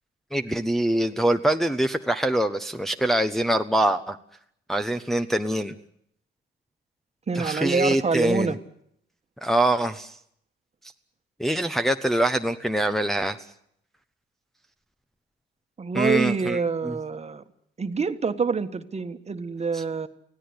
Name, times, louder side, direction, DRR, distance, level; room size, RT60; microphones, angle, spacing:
voice 1, 0.3-4.2 4.7-5.7 7.3-8.5 9.4-10.1 11.4-13.4 15.9-16.6 16.8-16.9 19.7-19.8, right 1 dB, ahead, 5 dB, 1.1 m, -24 dB
voice 2, 7.3-8.6 15.8-17.4 17.8-20.1, right 5 dB, 35° right, 8 dB, 1.6 m, -26 dB
25.0 x 17.0 x 9.8 m, 0.70 s
cardioid pair, 90°, 20 cm